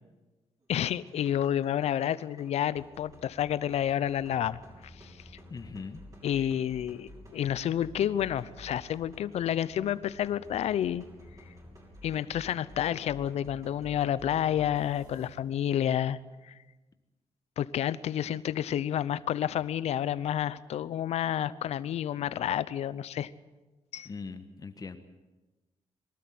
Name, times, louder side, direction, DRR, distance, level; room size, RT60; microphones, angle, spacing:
sound 1, 0.6-15.3, equal, 35° right, 7.1 m, -51 dB
voice 1, 0.7-5.2 6.2-11.0 12.0-16.2 16.4-16.6 17.6-23.3 23.9-24.1, left 10 dB, 80° left, 17 dB, 0.8 m, -30 dB
voice 2, 5.5-6.0 6.3-6.5 24.0-25.0, left 4 dB, 35° left, 8 dB, 1.4 m, -41 dB
24.0 x 13.0 x 9.5 m, 1.2 s
cardioid pair, 95°, 11 cm